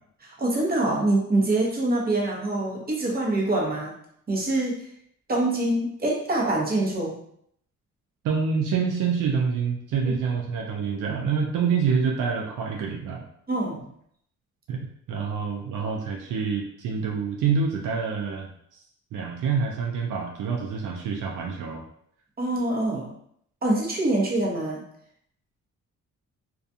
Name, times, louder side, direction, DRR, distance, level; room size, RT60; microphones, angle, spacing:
voice 1, 0.2-3.9 4.3-4.9 5.3-7.2 10.0-10.1 13.5-13.9 22.4-23.1 23.6-24.8, right 2 dB, 30° right, -3 dB, 0.8 m, -25 dB
voice 2, 8.2-13.2 14.7-18.8 19.1-21.8, right 5 dB, 80° right, 1 dB, 0.5 m, -27 dB
2.4 x 2.3 x 2.6 m, 0.68 s
cardioid pair, 90°, 31 cm